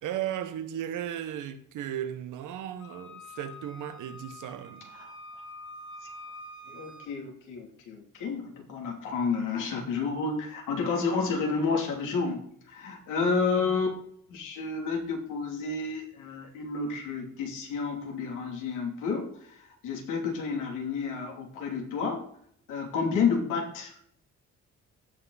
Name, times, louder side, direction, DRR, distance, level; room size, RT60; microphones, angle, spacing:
voice 1, 0.0-4.9 13.2-13.4, right 10 dB, 85° right, 1.2 m, -36 dB
Wind instrument woodwind instrument, 2.8-7.1, left 1 dB, 45° left, 1.9 m, -46 dB
voice 2, 6.7-14.0 14.3-22.2 22.7-24.0, left 4 dB, 90° left, 3.0 m, -30 dB
15.5 x 5.8 x 4.1 m
cardioid pair, 90°, 30 cm